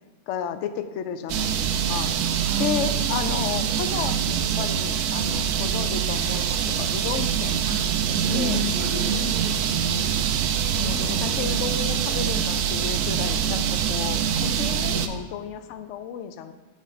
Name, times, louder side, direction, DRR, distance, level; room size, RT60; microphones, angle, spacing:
voice 1, 0.3-2.3 2.6-7.7 8.3-8.6 10.8-16.5, left 8 dB, 80° left, 9 dB, 0.6 m, -33 dB
sound 1, 1.3-15.1, right 8 dB, 70° right, 1.0 m, -24 dB
voice 2, 2.4-3.7 7.7-10.3 10.8-11.4, right 1 dB, 40° right, -3 dB, 0.7 m, -32 dB
8.7 x 3.7 x 5.2 m, 1.2 s
omnidirectional pair, 1.8 m